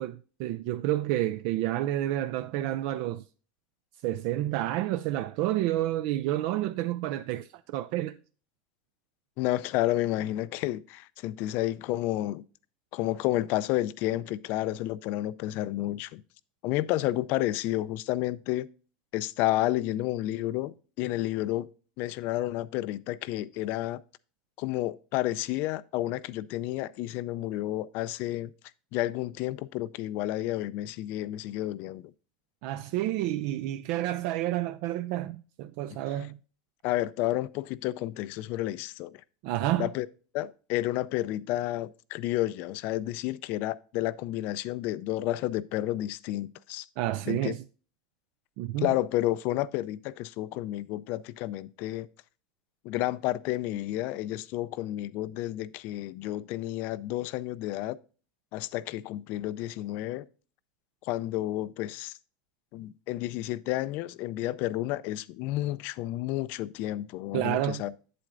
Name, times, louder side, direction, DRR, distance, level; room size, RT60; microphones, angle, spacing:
voice 1, 0.0-3.2 4.0-8.2 32.6-36.4 39.4-39.9 47.0-47.6 48.6-48.9 67.3-67.8, right 14 dB, 60° right, 0.4 m, -29 dB
voice 2, 9.4-12.4 12.9-16.2 16.6-18.7 19.1-21.7 22.0-24.0 24.6-28.5 28.9-32.1 36.8-39.2 39.8-40.1 40.3-46.9 47.3-47.5 48.8-52.1 52.8-58.0 58.5-60.3 61.0-62.2 62.7-67.9, left 15 dB, 55° left, 0.4 m, -31 dB
8.4 x 7.6 x 2.5 m
supercardioid pair, 135°, 4 cm